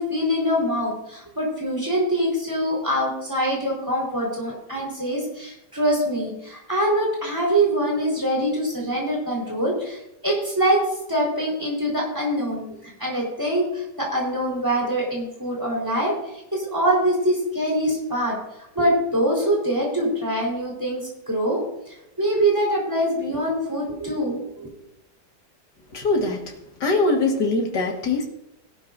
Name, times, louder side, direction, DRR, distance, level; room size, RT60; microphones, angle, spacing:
voice 1, 0.0-10.0 10.2-10.8 11.1-16.1 16.5-18.4 18.7-21.6 21.9-24.7, right 1 dB, 10° right, -2 dB, 4.3 m, -24 dB
voice 2, 25.9-26.5 26.8-28.2, left 3 dB, 85° left, 1 dB, 2.4 m, -22 dB
17.5 x 11.5 x 2.7 m, 0.83 s
omnidirectional pair, 1.8 m